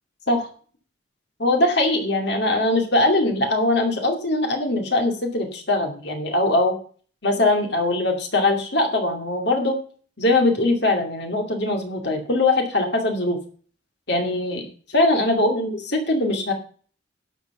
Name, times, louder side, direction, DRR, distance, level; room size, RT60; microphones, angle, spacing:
voice 1, 1.4-6.8 7.2-9.8 10.2-13.4 14.1-16.5, left 2 dB, 55° left, 3 dB, 2.4 m, -21 dB
11.5 x 5.9 x 7.0 m, 0.43 s
head